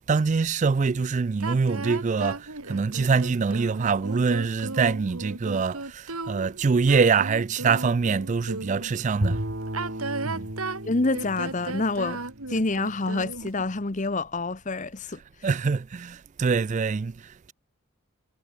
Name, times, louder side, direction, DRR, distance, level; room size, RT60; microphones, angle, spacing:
voice 1, 0.1-9.4 10.3-10.5 15.4-17.5, right 5 dB, 35° right, 0.3 m, -24 dB
sound 1, 1.4-8.9 9.6-13.6, right 3 dB, 85° right, 4.1 m, -35 dB
Bowed string instrument, 9.2-13.4, right 1 dB, 55° right, 3.7 m, -34 dB
voice 2, 10.8-12.2 12.5-15.2, left 3 dB, 35° left, 0.9 m, -27 dB
head